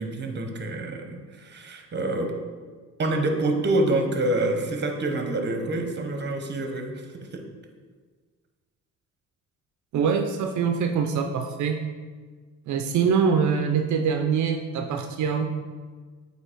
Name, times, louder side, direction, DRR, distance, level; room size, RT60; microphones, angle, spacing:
voice 1, 0.0-2.4 3.0-7.4, right 2 dB, 35° right, 4 dB, 0.9 m, -27 dB
voice 2, 9.9-11.8 12.7-15.4, right 6 dB, 70° right, 4 dB, 0.5 m, -24 dB
7.7 x 2.9 x 4.4 m, 1.5 s
cardioid pair, 90°, 30 cm